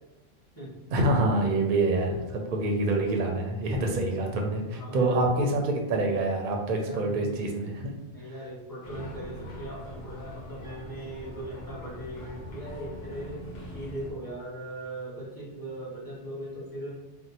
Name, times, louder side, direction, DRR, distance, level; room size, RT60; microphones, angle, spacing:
voice 1, 0.9-7.7, right 2 dB, 55° right, 1 dB, 0.6 m, -26 dB
voice 2, 4.7-5.3 6.8-7.4 8.1-13.4 13.7-16.9, right 1 dB, 20° left, -7 dB, 0.8 m, -39 dB
sound 1, 8.8-14.1, left 1 dB, 60° left, 1.0 m, -42 dB
2.7 x 2.1 x 4.0 m, 1.0 s
omnidirectional pair, 1.3 m